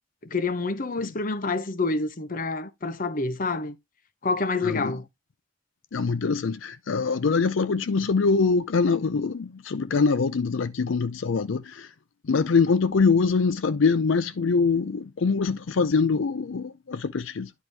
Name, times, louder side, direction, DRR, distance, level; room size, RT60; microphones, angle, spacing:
voice 1, 0.3-3.7 4.2-5.0, left 3 dB, 45° left, 0.9 m, -27 dB
voice 2, 4.6-5.0 5.9-11.9 12.2-17.5, left 4 dB, 75° left, 0.5 m, -24 dB
10.5 x 4.6 x 3.3 m
head